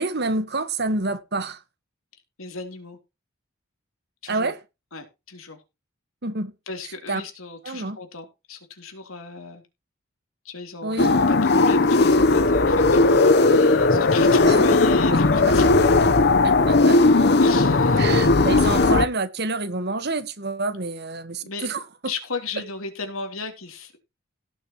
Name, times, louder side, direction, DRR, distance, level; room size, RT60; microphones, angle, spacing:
voice 1, 0.0-1.6 4.3-4.6 6.2-6.5 7.1-7.2 7.6-8.0 10.8-11.2 14.5-14.8 15.1-15.2 15.5-15.6 16.4-17.0 18.0-21.8, right 3 dB, 50° right, 1.4 m, -28 dB
voice 2, 2.4-3.0 4.2-4.5 4.9-5.6 6.7-9.6 10.4-15.7 17.4-18.2 21.4-21.7 22.0-24.0, left 4 dB, 90° left, 3.3 m, -35 dB
sound 1, 11.0-19.1, left 3 dB, 50° left, 0.9 m, -17 dB
17.5 x 6.8 x 3.0 m
head